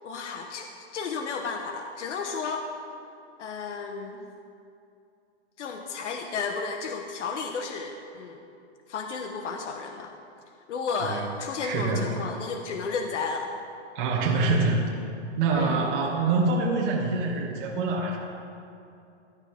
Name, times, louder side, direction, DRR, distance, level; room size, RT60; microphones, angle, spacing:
voice 1, 0.0-2.7 3.4-4.3 5.6-8.4 8.9-10.1 10.7-13.5 15.5-16.2, left 4 dB, 85° left, 4 dB, 1.2 m, -33 dB
voice 2, 11.6-12.2 13.9-14.8 15.4-18.2, right 3 dB, 45° right, -4 dB, 2.2 m, -25 dB
17.5 x 12.0 x 3.6 m, 2.6 s
hypercardioid pair, 155°, 35 cm